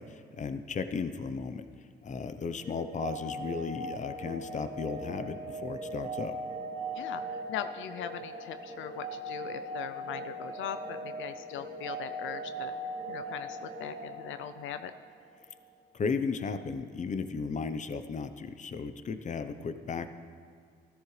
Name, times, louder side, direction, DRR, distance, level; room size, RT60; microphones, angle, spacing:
voice 1, 0.0-1.7 2.0-6.4 15.9-20.1, left 5 dB, 40° left, 10 dB, 0.7 m, -35 dB
sound 1, 2.6-15.4, right 1 dB, 25° right, 2.1 m, -40 dB
voice 2, 7.0-12.7 13.1-14.9, left 9 dB, 80° left, 10 dB, 0.5 m, -40 dB
14.5 x 13.5 x 3.2 m, 2.1 s
cardioid pair, 90°, 20 cm